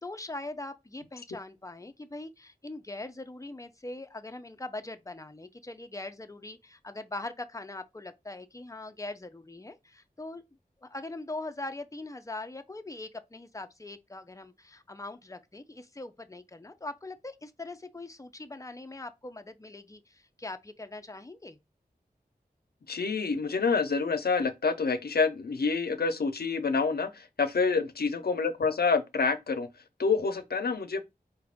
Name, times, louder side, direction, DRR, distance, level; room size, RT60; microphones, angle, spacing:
voice 1, 0.0-10.4 10.8-21.6 27.6-27.9, left 2 dB, 20° left, 0.5 m, -41 dB
voice 2, 22.9-29.7 30.0-31.0, left 4 dB, 80° left, 0.6 m, -27 dB
4.6 x 2.4 x 3.4 m
wide cardioid pair, 75°, 16 cm